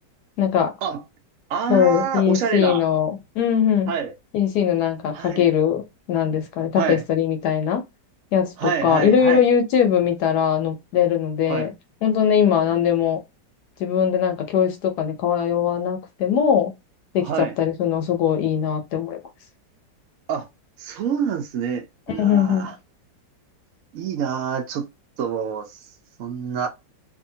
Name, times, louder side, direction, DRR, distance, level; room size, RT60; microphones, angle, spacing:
voice 1, 0.4-0.7 1.7-3.9 4.3-5.8 6.1-7.8 8.3-11.7 12.0-13.2 13.8-16.7 17.1-19.2 22.2-22.7, left 8 dB, 70° left, 1.1 m, -20 dB
voice 2, 1.5-2.8 3.9-4.1 5.1-5.4 6.7-7.0 8.6-9.4 11.5-11.7 17.2-17.5 20.3-20.5 20.8-22.7 23.9-24.9 25.2-25.8 26.2-26.7, right 7 dB, 80° right, 0.7 m, -26 dB
2.7 x 2.6 x 2.6 m
omnidirectional pair, 2.0 m